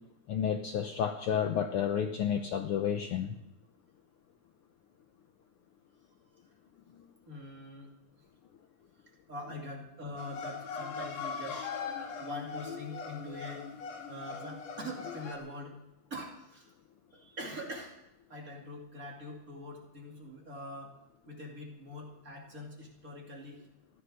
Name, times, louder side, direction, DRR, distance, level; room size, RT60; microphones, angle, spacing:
voice 1, 0.3-3.4, left 8 dB, 85° left, 6 dB, 1.2 m, -31 dB
voice 2, 7.3-7.9 9.3-11.7 12.2-13.7 14.1-15.8 16.1-16.7 17.4-18.0 18.3-20.9 21.3-23.6, left 1 dB, 30° right, -1 dB, 2.6 m, -43 dB
sound 1, 10.2-15.4, left 5 dB, 60° left, 2.7 m, -40 dB
15.0 x 11.5 x 6.5 m, 0.85 s
omnidirectional pair, 3.6 m